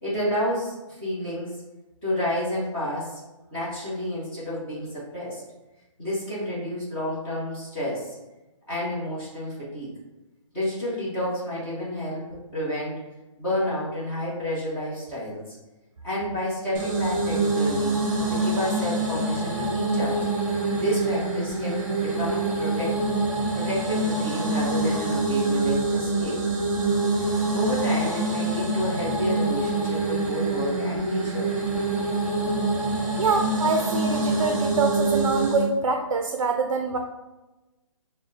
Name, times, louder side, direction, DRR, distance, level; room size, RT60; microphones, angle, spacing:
voice 1, 0.0-1.6 2.0-3.2 3.5-5.4 6.0-8.2 8.7-9.9 10.5-13.0 13.4-15.6 16.0-17.9 18.3-20.3 20.7-23.0 23.5-26.4 27.5-31.5, left 1 dB, 10° left, -10 dB, 0.9 m, -30 dB
sound 1, 16.7-35.7, right 2 dB, 35° right, 0.9 m, -25 dB
voice 2, 33.2-37.0, right 4 dB, 65° right, 4 dB, 0.4 m, -25 dB
6.0 x 2.1 x 2.7 m, 1.1 s
hypercardioid pair, 170°, 17 cm